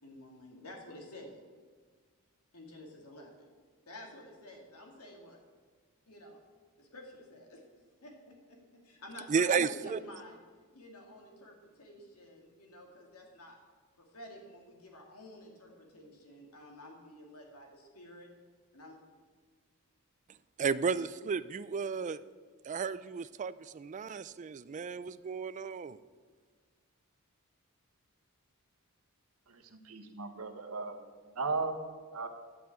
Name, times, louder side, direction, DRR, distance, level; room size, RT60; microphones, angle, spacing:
voice 1, 0.0-1.4 2.5-3.5 3.9-5.4 6.1-6.4 6.8-7.6 8.0-10.4 10.7-13.6 14.0-18.3 18.7-19.0, left 1 dB, 85° left, 1 dB, 2.5 m, -51 dB
voice 2, 9.3-10.0 20.6-22.2 22.6-26.0, right 6 dB, 35° right, 16 dB, 0.3 m, -33 dB
voice 3, 29.5-31.0 31.4-31.8 32.1-32.3, right 4 dB, 75° right, 5 dB, 1.3 m, -36 dB
12.0 x 5.6 x 8.7 m, 1.5 s
head